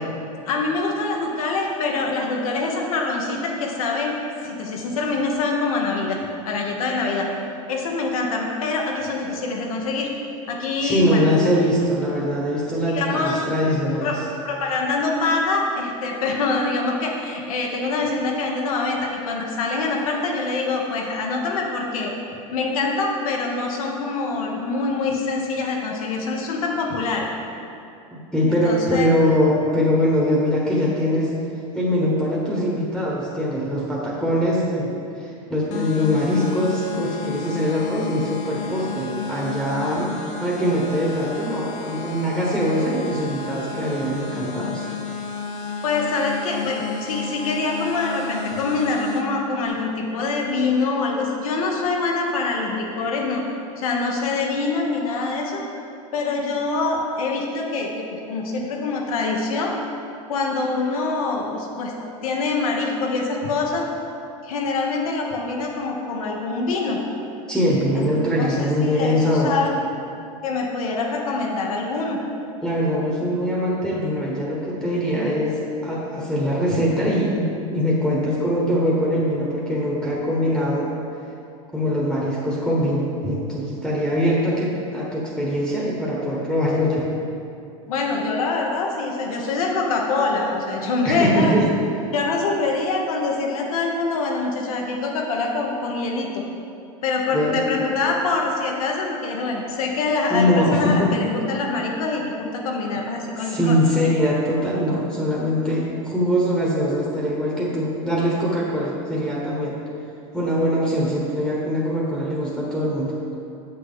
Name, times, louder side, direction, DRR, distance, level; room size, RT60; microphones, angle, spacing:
voice 1, 0.4-4.1 4.4-6.2 6.5-7.3 7.7-10.1 10.5-11.4 12.9-13.4 14.0-14.2 14.4-22.1 22.5-27.3 28.6-29.1 45.8-53.4 53.8-55.6 56.1-59.7 60.3-61.9 62.2-63.9 64.4-67.0 67.9-68.1 68.4-69.7 70.4-72.2 87.9-91.6 92.1-96.4 97.0-103.8, left 3 dB, 80° left, 0 dB, 1.3 m, -24 dB
voice 2, 10.8-14.2 28.1-31.3 31.7-40.1 40.4-44.8 67.5-69.5 72.6-80.9 81.7-87.1 91.0-91.7 97.3-97.6 100.3-101.1 103.4-109.8 110.3-113.1, equal, ahead, -5 dB, 1.4 m, -22 dB
sound 1, 35.7-49.2, left 4 dB, 45° left, 0.8 m, -32 dB
7.6 x 6.6 x 3.8 m, 2.7 s
hypercardioid pair, 105°, 18 cm